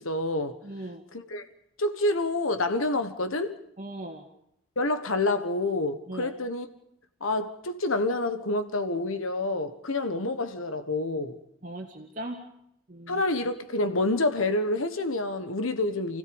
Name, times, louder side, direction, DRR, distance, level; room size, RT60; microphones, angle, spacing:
voice 1, 0.0-0.6 1.1-1.4 1.8-3.6 4.8-6.7 7.2-11.4 13.1-16.2, left 2 dB, 80° left, 1.4 m, -28 dB
voice 2, 0.6-1.0 3.8-4.2 6.1-6.3 11.6-12.4 12.9-13.2, right 1 dB, 40° right, 2.3 m, -38 dB
29.5 x 16.5 x 5.3 m
head